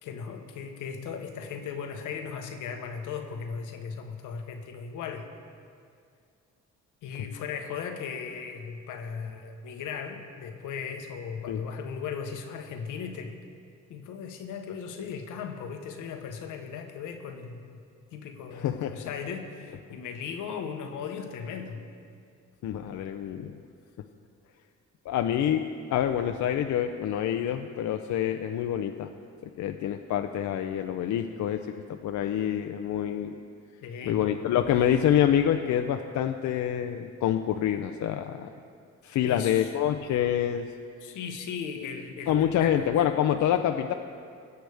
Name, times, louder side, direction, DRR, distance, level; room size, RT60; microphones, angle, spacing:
voice 1, 0.0-5.3 7.0-13.4 13.9-17.8 18.1-21.9 33.8-34.2 39.2-39.7 41.0-42.8, left 6 dB, 90° left, 5 dB, 1.1 m, -37 dB
voice 2, 18.5-19.1 22.6-23.6 25.1-25.6 25.9-29.1 29.4-33.4 34.0-38.5 39.0-40.7 42.3-43.9, left 10 dB, 70° left, 6 dB, 0.6 m, -27 dB
20.5 x 8.1 x 3.4 m, 2.3 s
cardioid pair, 90°, 30 cm